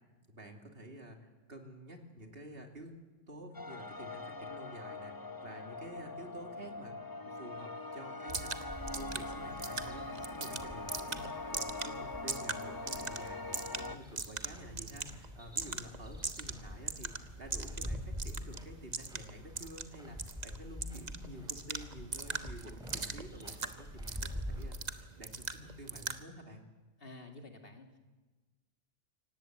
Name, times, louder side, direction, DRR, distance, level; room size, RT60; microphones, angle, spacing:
voice 1, 0.3-6.9 7.2-24.8 25.2-26.6, equal, 55° right, 3 dB, 2.9 m, -50 dB
sound 1, 3.5-14.0, left 2 dB, 20° left, 0.8 m, -43 dB
sound 2, 8.3-26.2, right 4 dB, 40° right, 1.2 m, -42 dB
sound 3, 8.7-24.7, equal, 5° right, 4.0 m, -46 dB
voice 2, 27.0-28.0, left 2 dB, 50° left, 4 dB, 2.7 m, -50 dB
26.0 x 18.0 x 8.1 m, 1.2 s
omnidirectional pair, 1.2 m